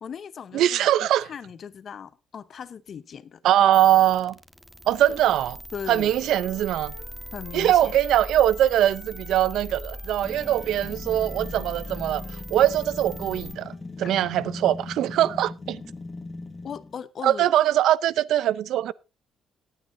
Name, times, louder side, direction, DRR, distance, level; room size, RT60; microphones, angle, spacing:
voice 1, 0.0-3.4 5.1-5.2 5.7-6.1 7.3-8.0 14.0-14.1 16.6-17.5, left 7 dB, 55° left, 0.9 m, -38 dB
voice 2, 0.5-1.3 3.4-4.4 4.9-5.6 5.9-6.9 7.5-12.2 12.5-13.7 14.0-15.8 17.2-18.9, right 12 dB, 80° right, 0.5 m, -22 dB
sound 1, 3.7-13.5, equal, ahead, 1.4 m, -40 dB
Wind instrument woodwind instrument, 6.0-9.7 9.9-13.8, right 4 dB, 65° right, 3.6 m, -51 dB
sound 2, 10.2-17.0, left 3 dB, 25° left, 1.4 m, -39 dB
18.5 x 9.1 x 2.6 m
cardioid pair, 90°, 0 cm